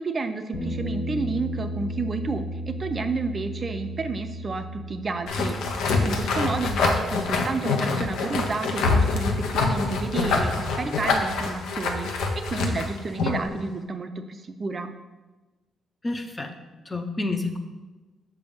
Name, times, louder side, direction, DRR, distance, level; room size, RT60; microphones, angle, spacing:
voice 1, 0.0-5.6 6.0-12.1 12.5-14.9, right 3 dB, 35° right, 8 dB, 0.4 m, -30 dB
Bass guitar, 0.5-6.8, equal, 55° left, 0.9 m, -34 dB
sound 1, 5.3-13.5, left 3 dB, 85° left, 0.7 m, -25 dB
voice 2, 16.0-16.5 16.9-17.6, left 2 dB, 20° left, 6 dB, 0.6 m, -29 dB
5.9 x 3.4 x 5.4 m, 1.2 s
cardioid pair, 80°, 0 cm